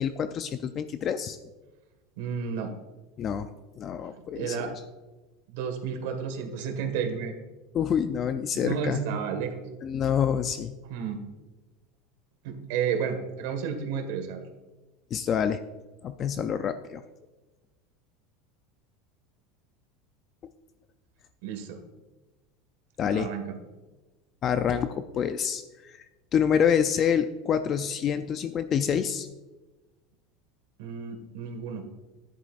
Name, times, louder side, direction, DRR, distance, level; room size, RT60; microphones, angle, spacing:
voice 1, 0.0-1.4 3.2-3.5 3.8-4.7 7.7-9.0 9.8-10.7 15.1-15.6 16.0-17.0 23.0-23.3 24.4-26.0 26.3-29.3, left 8 dB, 30° left, 10 dB, 0.4 m, -27 dB
voice 2, 2.2-2.7 4.4-4.7 5.5-7.3 8.5-9.6 10.9-11.2 12.4-14.4 21.4-21.8 23.1-23.6 30.8-31.8, right 6 dB, 70° right, 5 dB, 1.6 m, -31 dB
13.0 x 10.5 x 2.5 m, 1.2 s
supercardioid pair, 155°, 0 cm